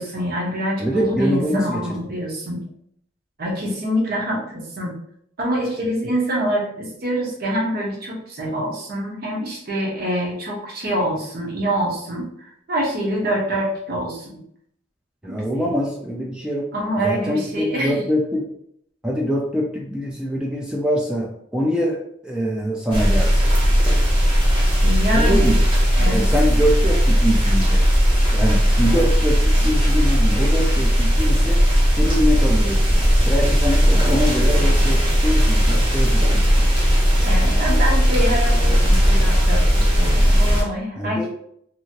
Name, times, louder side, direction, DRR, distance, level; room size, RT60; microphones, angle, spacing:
voice 1, 0.0-2.6 3.4-4.9 5.4-14.4 15.3-15.7 16.7-18.0 24.8-25.5 26.0-26.3 37.2-41.3, equal, 55° right, -2 dB, 0.9 m, -25 dB
voice 2, 0.8-2.0 15.2-16.7 17.0-18.5 19.0-22.0 22.2-23.5 25.1-25.5 26.1-27.9 28.3-31.6 31.9-36.7 41.0-41.3, equal, 5° right, -2 dB, 0.4 m, -24 dB
sound 1, 22.9-40.6, equal, 25° right, 0.9 m, -17 dB
2.8 x 2.6 x 2.8 m, 0.70 s
head